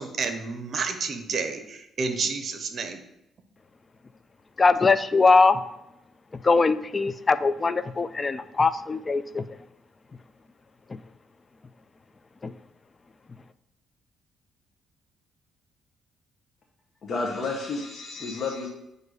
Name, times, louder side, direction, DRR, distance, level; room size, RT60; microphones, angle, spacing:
voice 1, 0.0-3.0, right 4 dB, 50° right, 0.8 m, -30 dB
voice 2, 4.6-5.6 6.4-9.4 10.9-11.0 12.4-12.5, left 4 dB, 30° left, 0.3 m, -21 dB
voice 3, 17.0-18.7, left 3 dB, 50° left, 0.9 m, -31 dB
7.8 x 2.7 x 4.8 m
cardioid pair, 90°, 0 cm